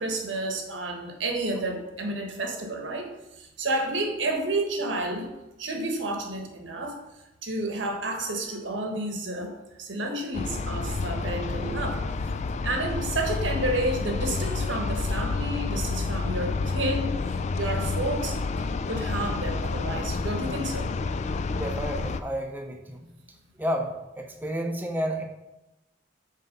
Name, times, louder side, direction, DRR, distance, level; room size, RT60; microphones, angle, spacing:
voice 1, 0.0-3.1 3.3-5.3 5.6-7.0 7.4-12.3 12.6-20.9, right 2 dB, 85° right, 3 dB, 1.2 m, -31 dB
sound 1, 10.3-22.2, left 3 dB, 40° left, 0.3 m, -29 dB
voice 2, 21.5-23.1 23.6-25.2, equal, 10° right, 2 dB, 0.7 m, -31 dB
5.8 x 4.3 x 5.2 m, 0.98 s
head